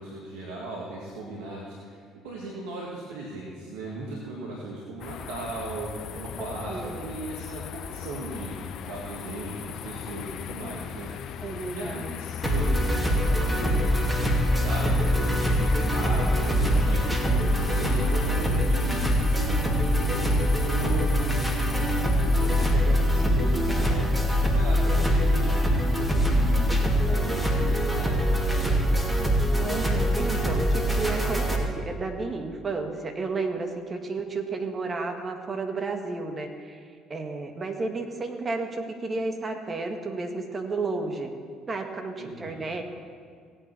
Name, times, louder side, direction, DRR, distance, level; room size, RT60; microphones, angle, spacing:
voice 1, 0.0-11.1 11.7-28.9 42.2-42.6, right 2 dB, 80° right, -4 dB, 1.8 m, -37 dB
sound 1, 5.0-22.7, left 8 dB, 60° left, 0.5 m, -37 dB
voice 2, 6.4-7.1 11.4-12.1 29.5-41.3 41.7-42.8, right 3 dB, 35° right, 4 dB, 1.7 m, -32 dB
sound 2, 12.4-31.6, equal, 5° right, 2.4 m, -23 dB
17.0 x 8.7 x 4.4 m, 2.1 s
hypercardioid pair, 60°, 0 cm